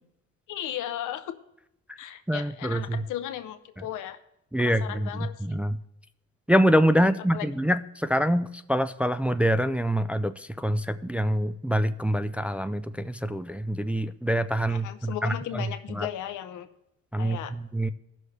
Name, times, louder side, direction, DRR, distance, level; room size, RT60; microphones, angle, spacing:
voice 1, 0.5-1.4 2.0-4.2 4.6-5.6 6.9-7.5 14.7-16.7 17.2-17.5, left 11 dB, 85° left, 11 dB, 0.8 m, -36 dB
voice 2, 2.3-3.0 4.5-5.7 6.5-15.3 16.0-16.1 17.1-17.9, equal, 5° right, 11 dB, 0.3 m, -25 dB
16.0 x 6.4 x 3.3 m, 0.85 s
cardioid pair, 90°, 30 cm